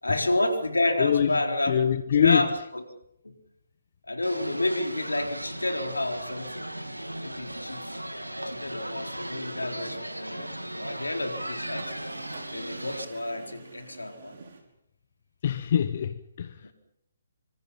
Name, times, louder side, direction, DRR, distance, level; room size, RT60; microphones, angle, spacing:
voice 1, 0.0-1.7 2.2-2.5 3.2-3.3 4.1-6.7 7.2-8.0 8.5-12.1 12.5-14.4, left 2 dB, 80° left, 4.2 m, -30 dB
voice 2, 1.0-1.4 1.7-2.5 15.4-16.7, left 8 dB, 45° left, 1.1 m, -24 dB
sound 1, 4.2-13.1, right 1 dB, 90° right, 2.5 m, -37 dB
sound 2, 6.2-14.6, right 4 dB, 50° right, 5.9 m, -50 dB
26.5 x 25.5 x 5.8 m
figure-of-eight pair, 135°, 0 cm